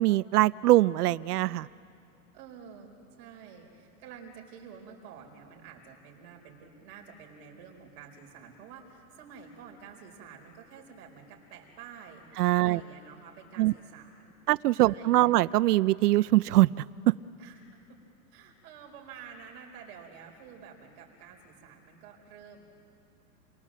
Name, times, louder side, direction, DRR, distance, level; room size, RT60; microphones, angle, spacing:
voice 1, 0.0-1.7 12.4-12.8 13.6-13.7 14.5-17.1, right 16 dB, 80° right, 17 dB, 0.6 m, -23 dB
voice 2, 2.3-12.3 12.5-14.3 14.8-15.3 17.4-18.0 18.3-22.8, right 6 dB, 40° right, 0 dB, 4.5 m, -49 dB
29.5 x 24.0 x 7.5 m, 2.5 s
supercardioid pair, 165°, 46 cm